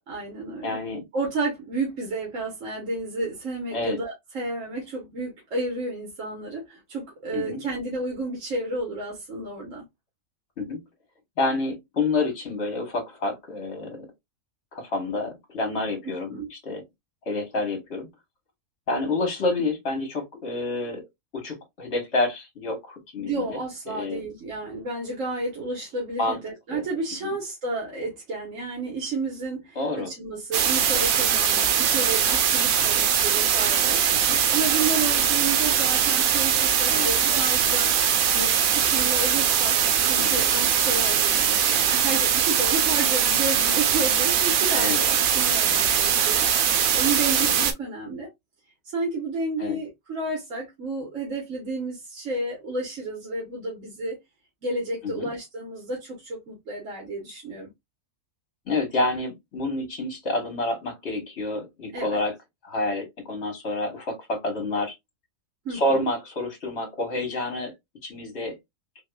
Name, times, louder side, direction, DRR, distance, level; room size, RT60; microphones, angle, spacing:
voice 1, 0.1-0.8 1.1-9.8 16.0-16.5 19.5-19.6 23.2-48.3 48.8-54.2 54.6-57.7 61.9-62.2 65.6-66.1, right 3 dB, 65° right, 1.6 m, -31 dB
voice 2, 0.6-1.0 3.7-4.0 7.3-7.6 10.6-10.8 11.4-14.1 14.7-16.8 17.2-18.1 18.9-21.0 21.3-23.6 23.9-24.2 26.2-26.4 26.7-26.9 27.2-27.3 29.7-30.1 34.1-34.4 36.9-37.1 40.2-40.4 44.7-45.0 47.5-47.6 49.6-49.8 55.0-55.3 58.7-62.3 62.6-64.9 65.7-67.7 68.0-68.6, left 2 dB, 55° left, 1.7 m, -28 dB
sound 1, 30.5-47.7, right 8 dB, 80° right, 1.1 m, -21 dB
4.0 x 2.8 x 2.2 m
omnidirectional pair, 1.4 m